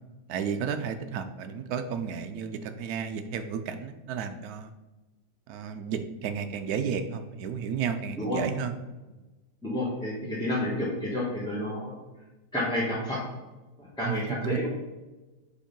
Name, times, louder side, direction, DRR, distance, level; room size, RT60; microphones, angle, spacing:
voice 1, 0.3-4.7 5.5-8.8 14.0-14.6, right 7 dB, 75° right, 8 dB, 0.8 m, -32 dB
voice 2, 9.6-11.9 12.5-13.2 14.0-14.7, left 1 dB, 5° left, -8 dB, 1.1 m, -30 dB
5.0 x 4.6 x 5.2 m, 1.1 s
omnidirectional pair, 2.1 m